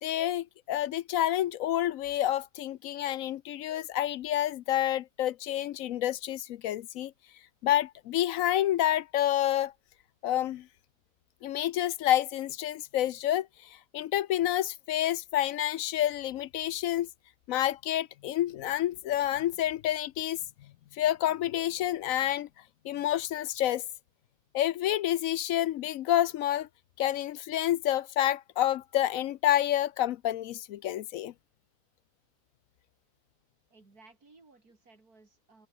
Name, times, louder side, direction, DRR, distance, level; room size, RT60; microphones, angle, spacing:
voice 1, 0.0-7.1 7.6-9.7 10.2-10.6 11.4-13.5 13.9-17.1 17.5-20.4 21.0-22.5 22.8-23.8 24.5-26.7 27.0-31.3, left 12 dB, 70° left, 0.9 m, -28 dB
voice 2, 33.7-35.7, right 3 dB, 80° right, 4.4 m, -58 dB
omnidirectional pair, 1.6 m